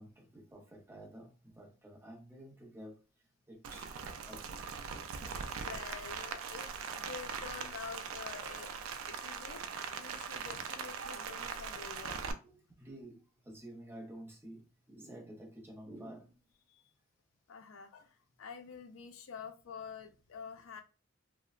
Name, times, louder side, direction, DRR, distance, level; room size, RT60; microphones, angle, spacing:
voice 1, 0.0-3.0 3.5-3.9 4.2-4.6 12.4-16.4, right 1 dB, 10° right, 0.6 m, -51 dB
Rain, 3.6-12.3, right 6 dB, 90° right, 0.3 m, -41 dB
voice 2, 4.8-8.7 9.0-9.6 10.0-12.4 16.7-16.8 17.5-20.8, left 6 dB, 85° left, 0.4 m, -48 dB
2.8 x 2.0 x 2.4 m
head